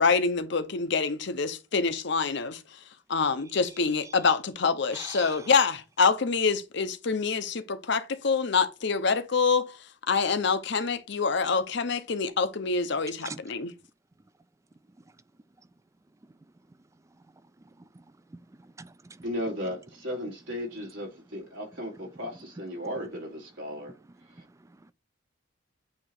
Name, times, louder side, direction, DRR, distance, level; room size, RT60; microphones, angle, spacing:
voice 1, 0.0-2.6 3.1-9.8 10.1-13.7, left 5 dB, 60° left, 0.7 m, -26 dB
voice 2, 4.9-5.5 13.2-13.4 17.9-18.0 18.3-19.2, right 4 dB, 15° right, 0.3 m, -44 dB
voice 3, 19.2-24.0 24.3-24.4, equal, 85° right, 2.8 m, -35 dB
8.6 x 2.9 x 4.3 m
head